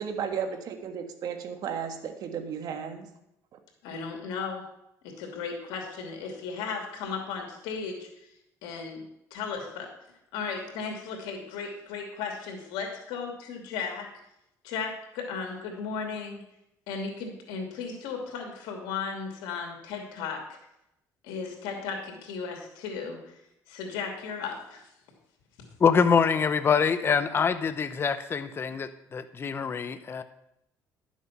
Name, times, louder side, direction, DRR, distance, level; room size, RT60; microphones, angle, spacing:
voice 1, 0.0-3.1, right 7 dB, 65° right, 7 dB, 1.6 m, -34 dB
voice 2, 3.8-4.7 5.0-8.1 8.6-9.0 9.3-9.9 10.3-14.1 14.6-16.4 16.9-20.5 21.2-23.3 23.7-24.9, left 5 dB, 90° left, 2 dB, 2.6 m, -35 dB
voice 3, 25.8-30.2, left 6 dB, 35° left, 11 dB, 0.7 m, -25 dB
11.5 x 7.2 x 5.9 m, 0.81 s
cardioid pair, 100°, 7 cm